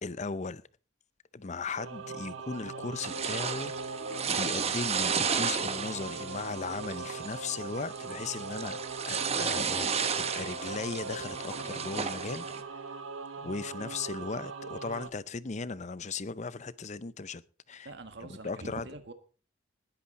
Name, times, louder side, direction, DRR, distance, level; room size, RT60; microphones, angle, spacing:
voice 1, 0.0-0.6 1.3-3.7 4.3-13.0 13.4-17.4 17.7-17.9 18.4-18.9, left 4 dB, 35° left, 0.6 m, -37 dB
Singing / Musical instrument, 1.7-15.1, right 4 dB, 85° right, 1.0 m, -40 dB
sound 1, 2.7-2.8 3.3-3.4 4.0-5.4 5.7-5.8 6.1-6.2 6.7-6.8 7.3-8.0 8.4-8.5 9.0-9.1 9.4-9.6, left 2 dB, 65° left, 1.5 m, -50 dB
sound 2, 3.0-12.6, right 6 dB, 30° right, 1.2 m, -33 dB
voice 2, 17.8-19.1, right 2 dB, 60° right, 1.5 m, -44 dB
20.0 x 10.0 x 4.2 m
head